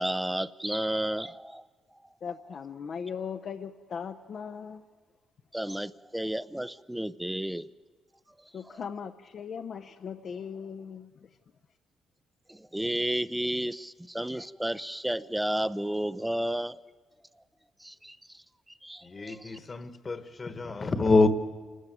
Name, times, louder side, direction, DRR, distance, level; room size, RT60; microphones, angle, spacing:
voice 1, 0.0-1.6 5.5-7.7 8.7-8.8 12.5-16.8 17.8-18.2 18.8-19.6, right 1 dB, 5° right, 0.6 m, -32 dB
voice 2, 2.2-4.8 8.5-11.1, left 6 dB, 55° left, 0.6 m, -38 dB
voice 3, 19.0-21.3, left 3 dB, 35° left, 1.3 m, -26 dB
28.0 x 13.0 x 9.1 m
cardioid pair, 90°, 0 cm